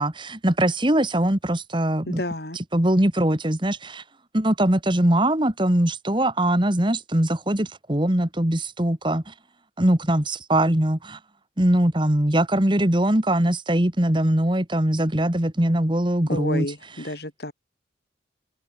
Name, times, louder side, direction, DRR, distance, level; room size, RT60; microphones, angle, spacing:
voice 1, 0.0-2.2 2.7-4.0 4.3-9.3 9.8-11.2 11.6-16.7, right 1 dB, 25° right, 1.9 m, -21 dB
voice 2, 2.1-2.6 16.3-17.5, left 1 dB, 65° left, 6.0 m, -30 dB
head